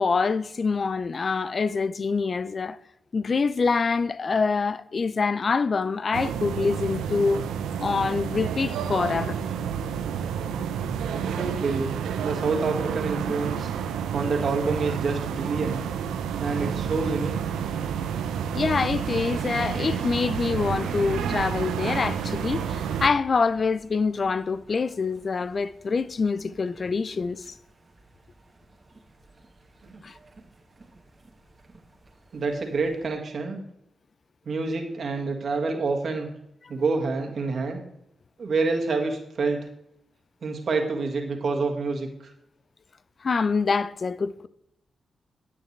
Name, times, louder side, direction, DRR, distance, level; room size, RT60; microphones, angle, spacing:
voice 1, 0.0-2.8 3.1-7.4 7.8-9.4 18.5-27.4 30.0-30.1 43.2-44.5, left 4 dB, 50° left, 0.5 m, -25 dB
sound 1, 6.1-23.1, right 8 dB, 90° right, 0.5 m, -30 dB
voice 2, 11.0-11.9 12.2-13.7 14.1-15.8 16.4-17.3 29.8-29.9 32.3-33.6 34.5-36.3 36.7-37.8 38.4-39.7 40.4-42.3, right 4 dB, 65° right, 1.7 m, -27 dB
sound 2, 17.5-33.2, right 3 dB, 40° right, 1.3 m, -45 dB
9.9 x 8.5 x 3.2 m
supercardioid pair, 45°, 0 cm